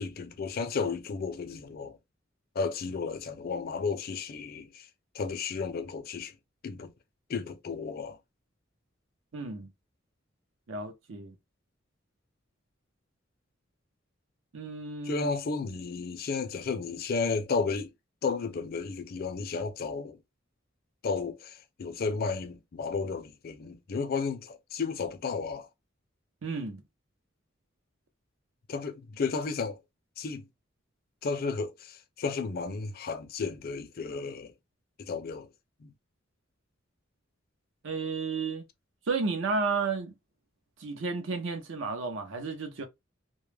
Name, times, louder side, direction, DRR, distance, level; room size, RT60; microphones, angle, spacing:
voice 1, 0.0-2.0 2.6-4.9 5.1-6.3 6.6-6.9 7.3-8.2 15.0-17.9 18.2-20.2 21.0-25.7 28.7-29.8 30.2-30.4 31.2-34.5 35.0-35.5 35.8-35.9, left 4 dB, 50° left, 0.4 m, -33 dB
voice 2, 9.3-9.7 10.7-11.4 14.5-15.3 26.4-26.8 37.8-38.6 39.1-40.1 40.8-42.9, right 4 dB, 75° right, 0.6 m, -32 dB
2.2 x 2.0 x 3.2 m
head